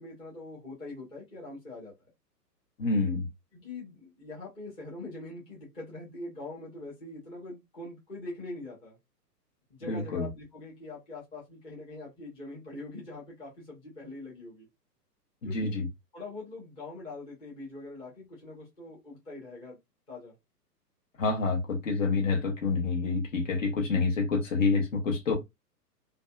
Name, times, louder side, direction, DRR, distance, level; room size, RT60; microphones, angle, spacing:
voice 1, 0.0-1.9 3.5-9.0 9.7-14.7 15.4-15.8 16.1-19.8 20.1-20.4 23.6-23.8, left 2 dB, 10° left, 0.7 m, -43 dB
voice 2, 2.8-3.2 9.9-10.3 15.5-15.8 21.2-25.4, left 4 dB, 50° left, 0.9 m, -27 dB
2.5 x 2.2 x 2.3 m
figure-of-eight pair, 115°, 48 cm